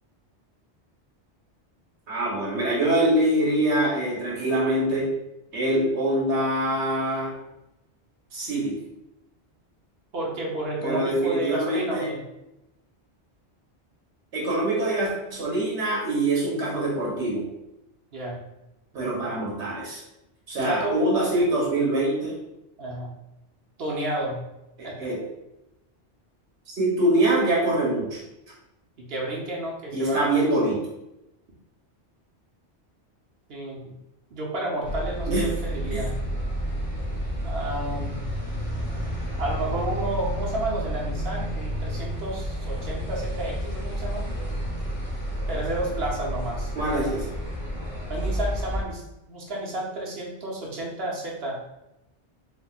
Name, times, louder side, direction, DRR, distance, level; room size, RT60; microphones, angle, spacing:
voice 1, 2.1-5.1 5.5-7.3 8.3-8.8 10.8-12.1 14.3-17.5 18.9-20.0 20.5-22.4 24.8-25.2 26.7-28.2 29.9-30.8 35.3-35.5 35.9-36.0 46.7-47.2, right 1 dB, 85° right, -5 dB, 1.3 m, -24 dB
voice 2, 10.1-12.2 18.1-18.4 20.7-20.9 22.8-23.1 23.8-24.4 24.8-24.9 29.0-30.2 33.5-33.9 34.3-36.1 37.4-38.2 39.4-44.2 45.5-46.7 48.1-49.0 49.3-51.6, right 1 dB, 65° right, -3 dB, 1.0 m, -31 dB
sound 1, 34.8-48.8, equal, 35° left, 1.0 m, -30 dB
4.1 x 2.6 x 2.3 m, 0.91 s
omnidirectional pair, 1.1 m